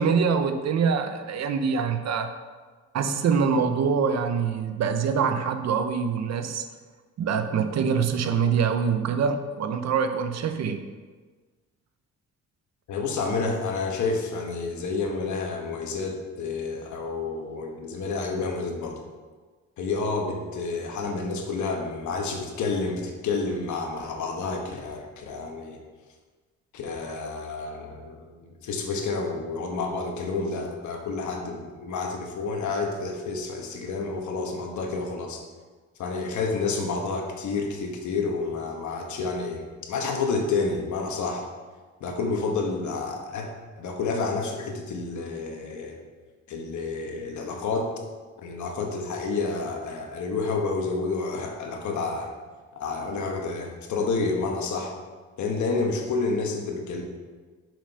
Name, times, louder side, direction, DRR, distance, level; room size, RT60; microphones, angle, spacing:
voice 1, 0.0-2.3 2.9-6.6 7.2-10.8, right 6 dB, 60° right, 8 dB, 0.8 m, -24 dB
voice 2, 12.9-19.0 19.8-25.8 26.7-35.4 36.0-41.4 42.0-46.0 46.5-47.9 48.4-52.3 52.8-54.9 55.4-57.0, left 4 dB, 70° left, 2 dB, 1.3 m, -29 dB
6.0 x 5.1 x 5.5 m, 1.4 s
cardioid pair, 90°, 30 cm